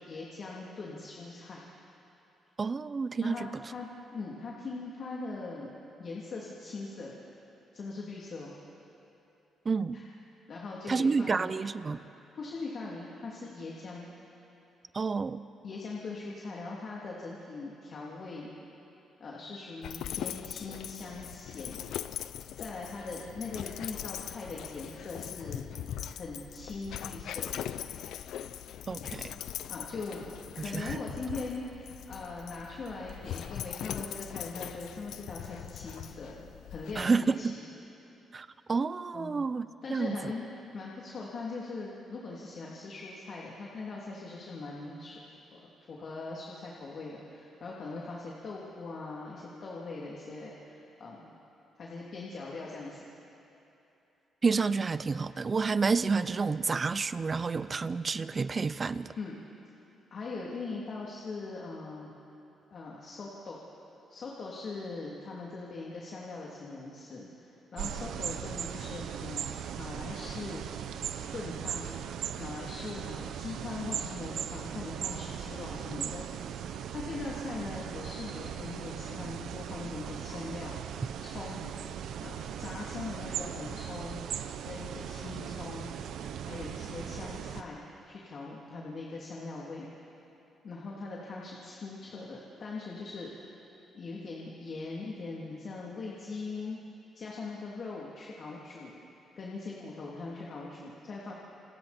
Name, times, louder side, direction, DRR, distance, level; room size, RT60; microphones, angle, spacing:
voice 1, 0.0-1.6 3.2-3.9 4.1-5.7 6.0-7.1 7.7-8.5 9.9-10.0 10.5-11.5 12.3-14.1 15.6-18.5 19.2-21.8 22.5-25.6 26.1-27.5 29.7-30.3 30.5-37.7 39.1-39.4 39.8-40.5 40.7-51.3 51.8-53.1 59.2-59.4 60.1-62.1 62.7-63.7 64.1-69.5 69.8-70.6 71.3-72.0 72.4-76.3 76.9-81.7 82.2-84.2 84.6-85.9 86.5-89.9 90.6-93.5 93.9-96.8 97.1-98.9 99.4-101.3, left 3 dB, 50° left, -4 dB, 3.1 m, -41 dB
voice 2, 2.6-3.5 9.7-10.0 10.9-12.0 14.9-15.4 28.9-29.4 30.7-31.0 37.0-37.6 38.3-40.3 54.4-59.1, right 4 dB, 35° right, 14 dB, 0.6 m, -29 dB
Dog, 19.8-37.0, left 10 dB, 80° left, 0.7 m, -41 dB
sound 1, 67.8-87.6, right 9 dB, 80° right, 1.0 m, -38 dB
29.5 x 28.5 x 4.5 m, 2.9 s
cardioid pair, 105°, 0 cm